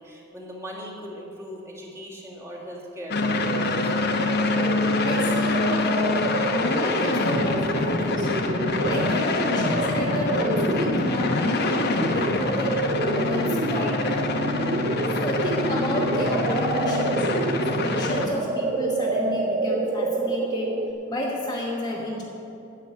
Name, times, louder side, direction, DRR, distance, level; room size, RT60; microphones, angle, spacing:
voice 1, 0.0-3.9, equal, 15° right, -4 dB, 2.1 m, -39 dB
sound 1, 3.1-18.3, left 2 dB, 55° left, 0.9 m, -25 dB
sound 2, 3.3-20.9, right 3 dB, 40° right, 0.5 m, -29 dB
voice 2, 5.0-8.4 8.9-14.3 15.1-17.4 17.7-22.2, left 1 dB, 20° left, -2 dB, 1.1 m, -31 dB
10.5 x 7.2 x 8.4 m, 2.7 s
head